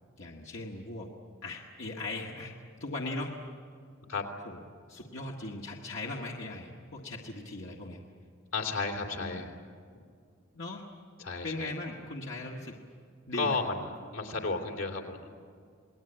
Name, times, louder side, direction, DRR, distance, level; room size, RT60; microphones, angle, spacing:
voice 1, 0.2-1.1 1.4-2.5 2.8-3.4 4.5-4.6 4.9-8.0 9.2-9.6 10.5-10.8 11.4-12.8 13.3-13.6, left 2 dB, 60° left, -2 dB, 1.8 m, -39 dB
voice 2, 8.5-9.5 11.2-11.7 13.4-15.3, left 3 dB, 85° left, 3 dB, 3.2 m, -33 dB
28.0 x 20.0 x 8.9 m, 2.2 s
head